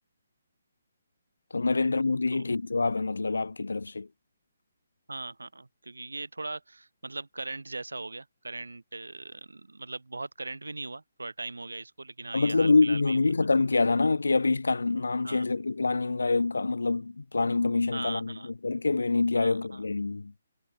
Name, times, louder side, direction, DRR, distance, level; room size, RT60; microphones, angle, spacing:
voice 1, 1.5-4.1 12.3-20.3, left 3 dB, 85° left, 0.8 m, -26 dB
voice 2, 5.1-13.2 15.2-15.5 17.9-18.5 19.3-19.8, right 3 dB, 90° right, 6.2 m, -39 dB
figure-of-eight pair, 145°, 0 cm